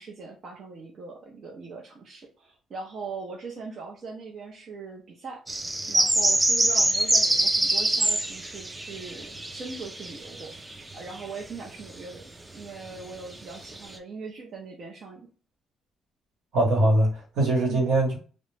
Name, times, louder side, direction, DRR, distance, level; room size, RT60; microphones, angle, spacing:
voice 1, 0.0-15.3 17.7-17.8, right 4 dB, 60° right, 0.6 m, -41 dB
sound 1, 5.5-11.2 11.9-12.0 12.9-13.0 13.3-13.9, right 1 dB, 20° right, 0.4 m, -25 dB
voice 2, 16.5-18.2, right 1 dB, 80° right, 1.1 m, -22 dB
2.4 x 2.1 x 3.2 m
cardioid pair, 90°, 0 cm